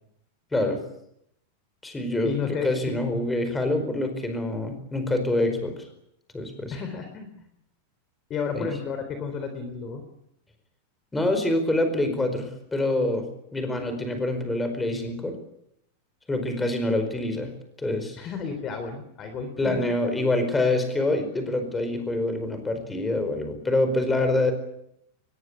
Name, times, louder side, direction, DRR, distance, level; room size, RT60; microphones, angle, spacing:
voice 1, 0.5-0.8 1.8-5.9 6.3-6.8 8.5-8.7 11.1-15.4 16.3-17.5 17.8-18.2 19.6-24.5, left 2 dB, 5° left, 7 dB, 4.7 m, -26 dB
voice 2, 2.2-2.9 6.7-7.3 8.3-10.0 18.2-19.8, left 6 dB, 25° left, 7 dB, 3.6 m, -32 dB
23.0 x 21.0 x 8.6 m, 0.74 s
supercardioid pair, 160°, 0 cm